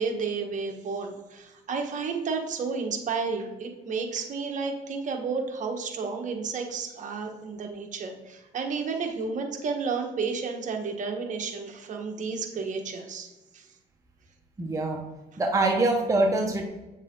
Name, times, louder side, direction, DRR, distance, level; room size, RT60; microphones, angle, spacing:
voice 1, 0.0-13.6, right 5 dB, 45° right, 3 dB, 1.5 m, -32 dB
voice 2, 14.6-15.0 15.4-16.6, right 2 dB, 20° right, 1 dB, 1.0 m, -24 dB
8.7 x 6.5 x 3.9 m, 1.1 s
cardioid pair, 110°, 17 cm